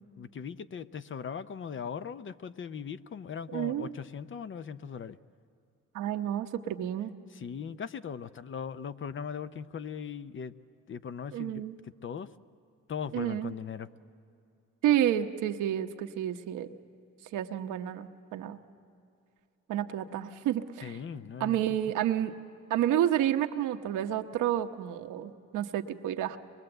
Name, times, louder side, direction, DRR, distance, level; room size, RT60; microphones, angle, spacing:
voice 1, 0.2-5.2 7.3-10.5 10.9-12.3 12.9-13.9 20.8-21.6, left 7 dB, 40° left, 13 dB, 0.7 m, -39 dB
voice 2, 3.5-3.9 5.9-7.1 11.3-11.7 13.1-13.5 14.8-16.7 17.3-18.6 19.7-21.0 21.4-22.3 22.7-26.4, right 11 dB, 85° right, 6 dB, 1.0 m, -30 dB
23.5 x 22.0 x 7.9 m, 2.6 s
cardioid pair, 90°, 30 cm